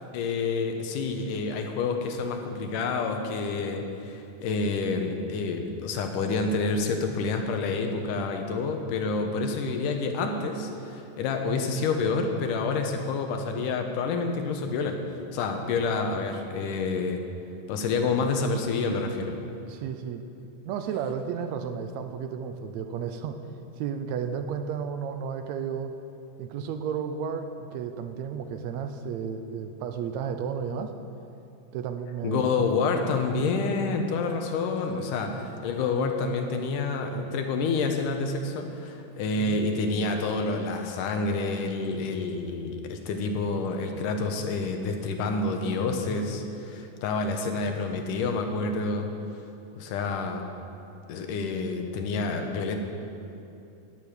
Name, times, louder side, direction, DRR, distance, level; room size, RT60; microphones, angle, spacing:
voice 1, 0.1-15.0 15.3-17.2 17.7-19.4 32.2-49.1 49.8-50.5 51.1-52.8, left 4 dB, 85° left, 4 dB, 2.6 m, -28 dB
voice 2, 19.7-20.2 20.6-23.4 23.8-25.9 26.4-30.9 31.7-32.4 35.0-35.2 39.4-39.6, right 7 dB, 75° right, 8 dB, 1.7 m, -33 dB
12.0 x 6.8 x 9.8 m, 2.8 s
omnidirectional pair, 3.7 m